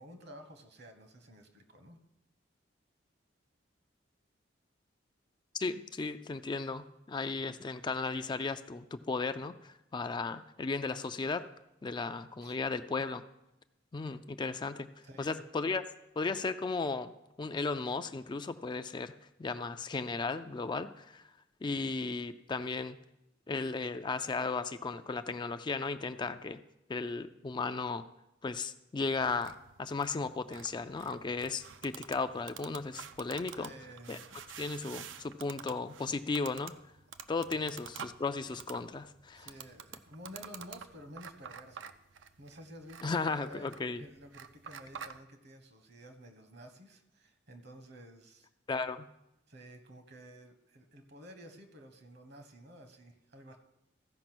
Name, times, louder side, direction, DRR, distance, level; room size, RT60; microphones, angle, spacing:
voice 1, 0.0-2.0 12.4-12.6 15.0-15.4 33.6-34.4 37.5-37.7 39.3-41.9 42.2-48.5 49.5-53.6, equal, 60° right, 6 dB, 1.2 m, -52 dB
voice 2, 5.6-11.4 11.8-13.2 13.9-14.9 15.2-15.8 16.2-17.1 17.4-19.1 19.4-21.2 21.6-23.0 23.5-26.6 26.9-28.1 28.4-33.7 34.1-34.2 34.6-36.8 37.3-39.5 43.0-44.1 48.7-49.1, left 4 dB, 25° left, 10 dB, 0.3 m, -35 dB
sound 1, 29.2-45.2, right 7 dB, 75° right, 0.5 m, -49 dB
14.5 x 5.2 x 6.0 m, 0.90 s
head